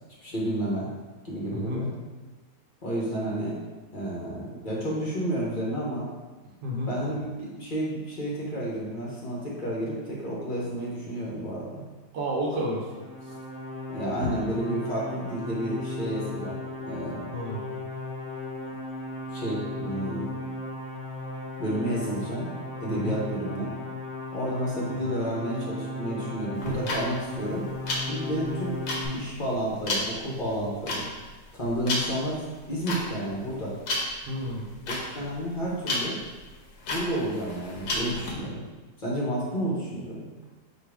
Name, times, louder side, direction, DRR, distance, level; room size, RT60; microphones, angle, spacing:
voice 1, 0.2-0.9 1.2-1.9 2.8-3.6 3.9-6.1 6.9-11.8 13.9-17.2 19.3-20.3 21.6-22.5 22.8-23.7 24.3-27.7 28.0-28.7 29.1-31.1 31.5-33.7 34.9-36.2 36.9-38.6 39.0-40.2, right 1 dB, 40° left, -5 dB, 0.8 m, -31 dB
voice 2, 1.5-1.8 6.6-6.9 12.1-12.9 17.3-17.6 22.9-23.2 25.0-25.1 34.2-34.7, equal, 75° right, -2 dB, 1.4 m, -30 dB
sound 1, 12.8-29.1, left 2 dB, 65° left, 1.1 m, -36 dB
sound 2, 26.5-38.3, left 2 dB, 80° left, 1.5 m, -33 dB
4.6 x 2.4 x 4.7 m, 1.3 s
omnidirectional pair, 1.8 m